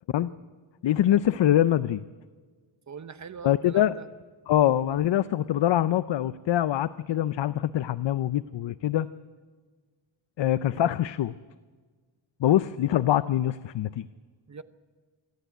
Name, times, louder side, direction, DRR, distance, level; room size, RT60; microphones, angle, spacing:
voice 1, 0.8-2.0 3.4-3.9 4.5-9.1 10.4-11.3 12.4-14.1, left 12 dB, 65° left, 15 dB, 0.6 m, -24 dB
voice 2, 2.9-4.1 12.4-12.6 14.5-14.6, right 5 dB, 35° right, 11 dB, 0.9 m, -42 dB
24.5 x 13.5 x 9.1 m, 1.4 s
wide cardioid pair, 165°, 47 cm